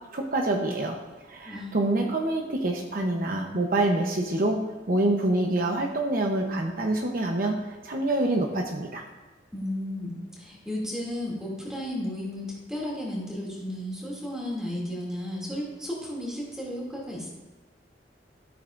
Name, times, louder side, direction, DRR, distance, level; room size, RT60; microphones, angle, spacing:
voice 1, 0.1-1.0 1.3-4.6 4.9-7.6 7.8-9.0, right 2 dB, 55° right, 2 dB, 0.8 m, -26 dB
voice 2, 1.4-2.1 9.5-17.3, left 1 dB, 5° right, -4 dB, 2.5 m, -34 dB
13.0 x 8.3 x 2.5 m, 1.2 s
head